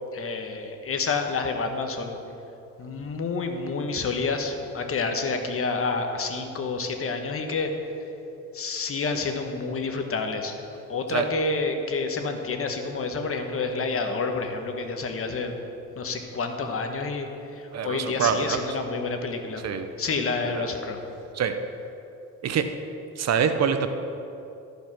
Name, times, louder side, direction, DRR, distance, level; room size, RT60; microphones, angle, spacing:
voice 1, 0.1-2.2 2.8-7.8 8.5-10.6 10.9-15.6 16.0-19.6 20.0-21.0, left 4 dB, 45° left, 5 dB, 1.2 m, -29 dB
voice 2, 17.7-18.6 19.6-19.9 20.4-20.7 21.3-21.6 22.4-22.8 23.2-23.9, right 7 dB, 60° right, 8 dB, 0.7 m, -25 dB
13.0 x 5.2 x 6.0 m, 2.9 s
cardioid pair, 90°, 30 cm